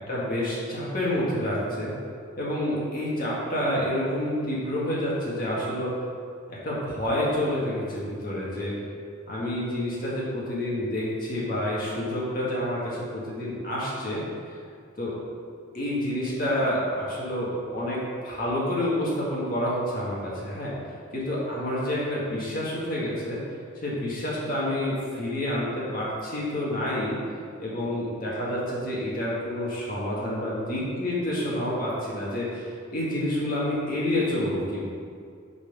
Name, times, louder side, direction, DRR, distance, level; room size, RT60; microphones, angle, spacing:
voice 1, 0.1-1.9 2.4-5.9 6.5-8.7 9.3-14.2 15.0-15.1 15.7-20.7 21.1-23.4 23.8-27.2 27.6-34.9, left 1 dB, 45° left, -6 dB, 2.0 m, -28 dB
9.6 x 4.3 x 5.4 m, 2.2 s
head